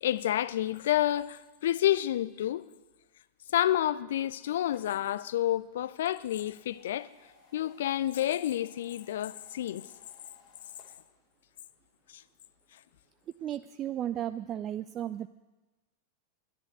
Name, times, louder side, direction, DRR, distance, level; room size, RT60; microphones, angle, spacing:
voice 1, 0.0-2.6 3.5-7.1 7.5-9.9 12.1-12.2, left 12 dB, 60° left, 0.4 m, -29 dB
sound 1, 4.4-4.9 6.3-10.9, left 4 dB, 40° left, 2.7 m, -61 dB
voice 2, 13.4-15.3, right 11 dB, 30° right, 0.3 m, -34 dB
10.5 x 10.0 x 8.0 m
figure-of-eight pair, 90°, 0 cm